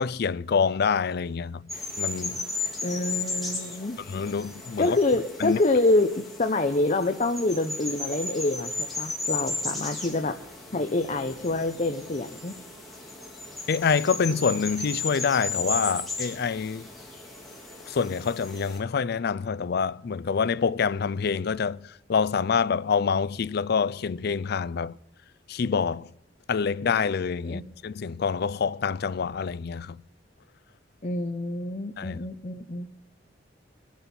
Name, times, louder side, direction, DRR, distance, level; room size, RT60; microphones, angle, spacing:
voice 1, 0.0-1.6 2.0-2.6 4.1-5.0 5.4-5.6 13.7-16.9 17.9-25.0 25.5-26.1 26.5-30.0 32.0-32.2, left 6 dB, 55° left, 0.4 m, -26 dB
sound 1, 1.7-18.8, left 3 dB, ahead, 3.8 m, -35 dB
voice 2, 2.8-4.0 4.8-10.3 10.7-12.5 27.4-27.6 31.0-32.9, left 2 dB, 40° left, 0.8 m, -26 dB
24.0 x 10.5 x 4.4 m
head